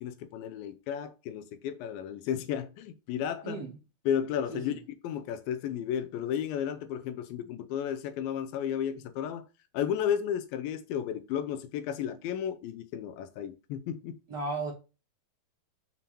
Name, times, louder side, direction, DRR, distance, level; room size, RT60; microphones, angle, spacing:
voice 1, 0.0-3.6 4.1-9.5 9.7-14.2, left 9 dB, 80° left, 2.2 m, -33 dB
voice 2, 3.4-3.8 4.5-4.8 14.3-14.7, right 3 dB, 50° right, 1.3 m, -35 dB
6.9 x 3.6 x 4.2 m
omnidirectional pair, 4.4 m